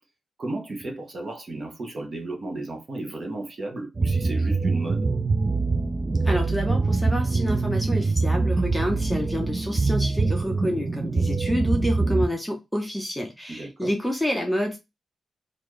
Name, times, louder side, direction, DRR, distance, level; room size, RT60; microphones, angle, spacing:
voice 1, 0.4-5.1 13.5-13.9, right 2 dB, 40° right, 1.1 m, -34 dB
sound 1, 3.9-12.3, right 3 dB, 25° right, 0.4 m, -24 dB
voice 2, 6.2-14.8, equal, 5° left, 0.7 m, -28 dB
4.1 x 2.6 x 3.1 m
wide cardioid pair, 140°, 0 cm